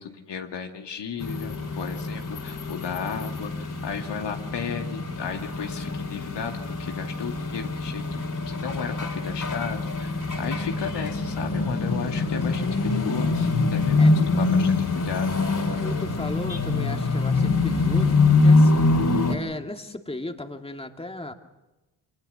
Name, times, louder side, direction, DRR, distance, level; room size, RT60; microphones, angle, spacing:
voice 1, 0.0-8.2 8.5-15.4, left 6 dB, 60° left, 3 dB, 2.5 m, -34 dB
sound 1, 1.2-19.4, left 3 dB, 40° left, 4.2 m, -24 dB
voice 2, 15.7-18.9 19.3-21.3, left 2 dB, 10° left, 4 dB, 2.5 m, -35 dB
25.5 x 20.0 x 7.1 m, 1.0 s
hypercardioid pair, 45°, 49 cm